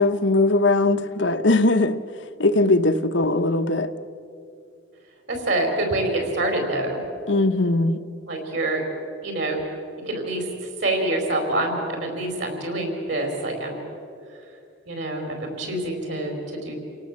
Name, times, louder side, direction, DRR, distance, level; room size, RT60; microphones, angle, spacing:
voice 1, 0.0-2.0 2.4-3.9 7.3-8.0, left 2 dB, 65° left, 9 dB, 1.0 m, -20 dB
voice 2, 5.3-7.0 8.2-8.8 9.2-9.6 10.1-10.4 10.8-13.8 14.9-16.7, right 2 dB, 60° right, 3 dB, 4.7 m, -26 dB
29.0 x 17.5 x 7.5 m, 2.5 s
head